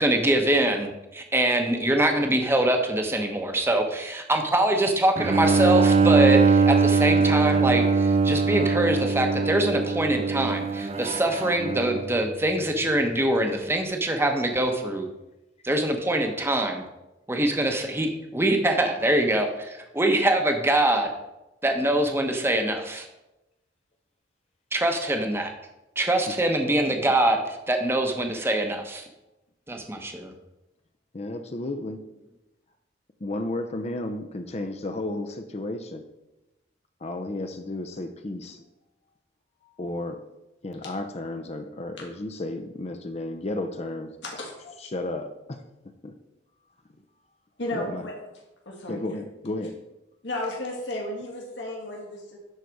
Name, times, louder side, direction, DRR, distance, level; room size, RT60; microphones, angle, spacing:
voice 1, 0.0-15.1 15.6-16.8 17.3-21.1 21.6-23.0 24.7-25.5 26.0-29.0 29.7-30.3, right 1 dB, 15° right, 4 dB, 0.9 m, -24 dB
Bowed string instrument, 5.2-12.2, right 4 dB, 30° right, 0.4 m, -22 dB
voice 2, 31.1-32.0 33.2-36.0 37.0-38.6 39.8-40.2 40.6-44.1 44.8-45.6 46.0-46.1 47.7-48.1 48.9-49.7, left 2 dB, 35° left, 6 dB, 0.6 m, -33 dB
voice 3, 44.2-44.7 47.6-48.1 48.7-49.0 50.2-52.4, left 1 dB, 70° left, -2 dB, 2.0 m, -33 dB
11.0 x 4.1 x 4.6 m, 0.97 s
head